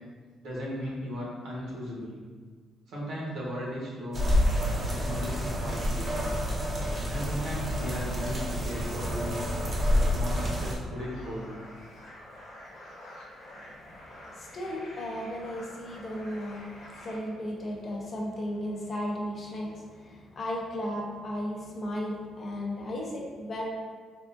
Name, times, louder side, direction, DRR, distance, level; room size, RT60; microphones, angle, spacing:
voice 1, 0.4-2.2 2.9-4.2 4.9-6.3 7.1-9.4 9.9-11.5, equal, 80° right, -5 dB, 0.9 m, -36 dB
sound 1, 4.1-10.7, equal, 30° right, 0.6 m, -28 dB
sound 2, 10.9-17.2, left 1 dB, 70° left, 0.9 m, -47 dB
voice 2, 13.6-23.6, left 1 dB, 35° left, -2 dB, 0.5 m, -35 dB
3.5 x 2.3 x 2.5 m, 1.5 s
cardioid pair, 145°, 0 cm